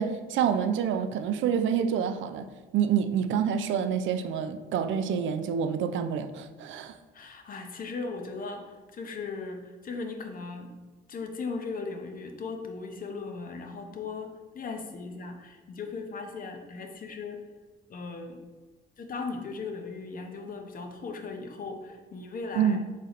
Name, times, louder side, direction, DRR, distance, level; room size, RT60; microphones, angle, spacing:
voice 1, 0.0-2.5 2.7-7.0 22.5-22.8, right 8 dB, 75° right, 9 dB, 0.4 m, -27 dB
voice 2, 7.1-10.7 11.1-17.5 17.9-18.4 19.0-22.8, left 4 dB, 45° left, 4 dB, 0.7 m, -38 dB
4.0 x 3.1 x 3.9 m, 1.3 s
cardioid pair, 90°, 20 cm